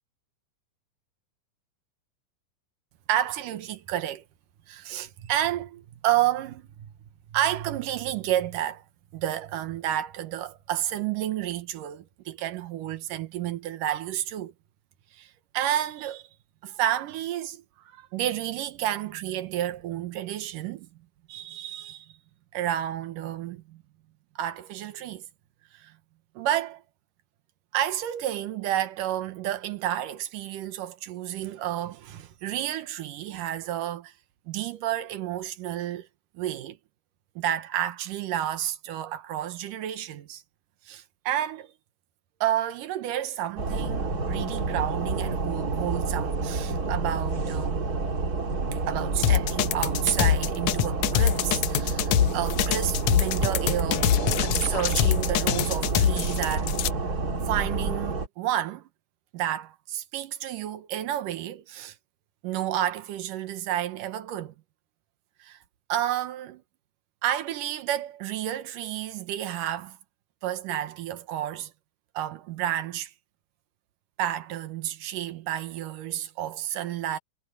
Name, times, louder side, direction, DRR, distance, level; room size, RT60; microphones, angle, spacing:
voice 1, 3.1-4.2 4.7-6.9 7.3-8.8 9.1-14.5 15.1-16.3 16.6-20.9 21.3-22.1 22.5-23.8 24.4-25.3 25.7-26.0 26.4-26.8 27.7-34.1 34.5-36.1 36.3-36.8 37.4-40.4 40.9-41.7 42.4-47.9 48.7-56.8 57.5-58.9 59.3-62.0 62.4-64.5 65.4-65.6 65.9-66.6 67.2-70.0 70.4-71.7 72.1-73.1 74.2-77.2, right 12 dB, 70° right, 2.6 m, -30 dB
sound 1, 43.6-58.3, right 3 dB, 30° right, 2.2 m, -29 dB
sound 2, 49.2-56.9, left 11 dB, 80° left, 1.6 m, -24 dB
omnidirectional pair, 4.1 m